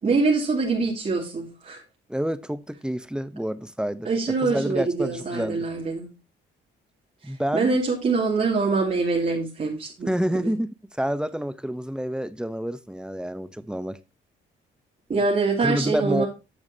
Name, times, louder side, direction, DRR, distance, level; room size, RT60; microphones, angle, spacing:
voice 1, 0.0-1.8 4.0-6.1 7.2-10.5 15.1-16.3, right 4 dB, 40° right, 2.7 m, -24 dB
voice 2, 2.1-5.7 7.2-7.8 10.1-14.0 15.6-16.2, equal, 5° right, 0.7 m, -28 dB
10.5 x 6.8 x 2.7 m
cardioid pair, 90°, 20 cm